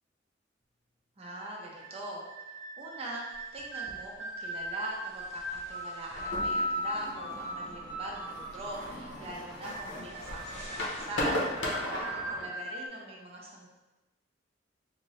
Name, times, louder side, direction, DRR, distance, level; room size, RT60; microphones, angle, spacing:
voice 1, 1.2-3.2 3.5-11.2 11.8-13.7, right 1 dB, 30° right, -2 dB, 0.5 m, -43 dB
sound 1, 1.2-12.9, right 1 dB, 85° right, 1.0 m, -39 dB
sound 2, 3.3-6.9 7.3-7.7 8.2-8.3 8.7-11.1, left 1 dB, 35° left, 0.6 m, -52 dB
sound 3, 6.2-12.5, left 1 dB, 80° left, 0.8 m, -37 dB
3.6 x 2.7 x 3.0 m, 1.1 s
head